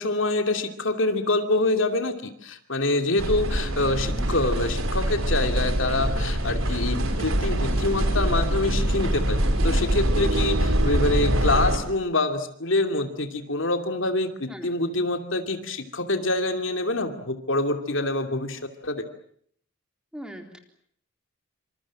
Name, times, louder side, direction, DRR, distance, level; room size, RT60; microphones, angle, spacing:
voice 1, 0.0-19.0, left 2 dB, 60° left, 6 dB, 2.7 m, -26 dB
sound 1, 3.2-11.8, right 1 dB, 75° right, 4.3 m, -24 dB
voice 2, 3.8-4.3 14.5-14.7 20.1-20.6, equal, 5° right, 4 dB, 3.8 m, -40 dB
27.0 x 26.5 x 7.5 m, 0.64 s
head